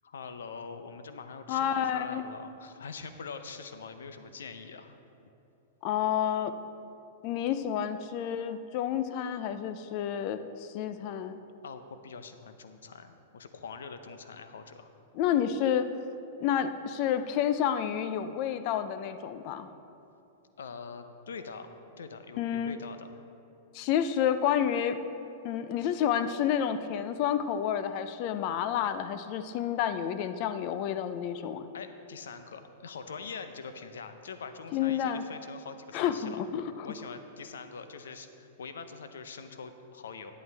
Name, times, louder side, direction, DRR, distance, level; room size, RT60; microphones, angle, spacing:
voice 1, 0.0-5.0 11.6-15.0 20.6-21.7 22.0-23.1 31.7-36.4 36.8-40.3, left 5 dB, 85° left, 9 dB, 0.7 m, -43 dB
voice 2, 1.5-2.2 5.8-6.5 7.2-11.4 15.1-15.9 16.4-19.7 22.4-22.8 23.7-25.0 25.4-31.7 34.7-35.2 35.9-36.7, left 9 dB, 50° left, 11 dB, 0.5 m, -29 dB
11.0 x 9.2 x 3.4 m, 2.8 s
hypercardioid pair, 125°, 0 cm